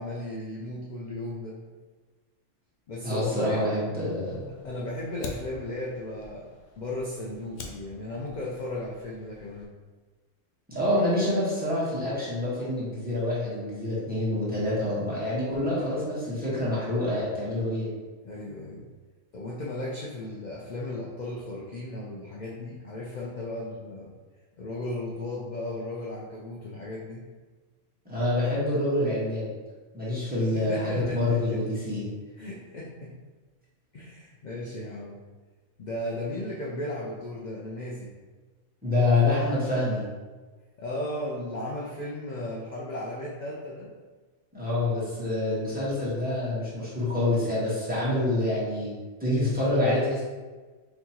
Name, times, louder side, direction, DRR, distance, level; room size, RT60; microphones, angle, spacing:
voice 1, 0.0-1.6 2.9-3.7 4.6-6.5 6.8-9.7 15.8-15.9 18.2-18.9 19.3-24.1 24.6-27.2 30.5-31.6 32.4-33.1 33.9-35.2 35.8-38.1 40.8-43.9, left 1 dB, 55° left, -4 dB, 0.5 m, -35 dB
voice 2, 3.0-4.5 10.7-17.9 28.0-29.5 29.9-32.1 38.8-40.0 44.5-48.9 49.2-50.2, left 1 dB, 10° right, -9 dB, 1.1 m, -26 dB
Fire, 4.3-9.7, left 3 dB, 75° left, 0.9 m, -46 dB
4.3 x 2.9 x 2.8 m, 1.3 s
omnidirectional pair, 1.3 m